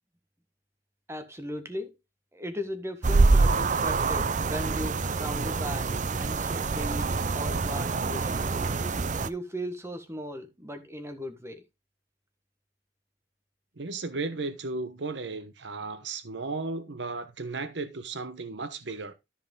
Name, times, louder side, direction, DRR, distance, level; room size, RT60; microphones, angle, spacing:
voice 1, 1.1-2.0 2.3-8.5 9.2-11.6, equal, 15° right, 1.5 m, -37 dB
sound 1, 3.0-9.3, right 3 dB, 45° right, 0.6 m, -26 dB
voice 2, 13.8-19.1, right 3 dB, 75° right, 1.0 m, -35 dB
13.5 x 4.9 x 3.8 m
head